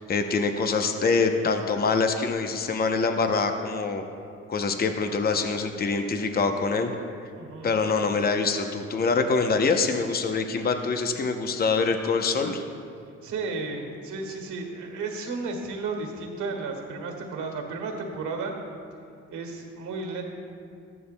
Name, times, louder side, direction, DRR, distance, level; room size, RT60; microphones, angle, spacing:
voice 1, 0.0-4.0 4.5-6.9 7.6-12.6, left 4 dB, 30° left, 6 dB, 0.7 m, -25 dB
voice 2, 7.3-7.8 13.2-18.5 19.3-20.2, right 3 dB, 75° right, 2 dB, 1.7 m, -33 dB
14.0 x 11.0 x 2.2 m, 2.4 s
cardioid pair, 90°, 30 cm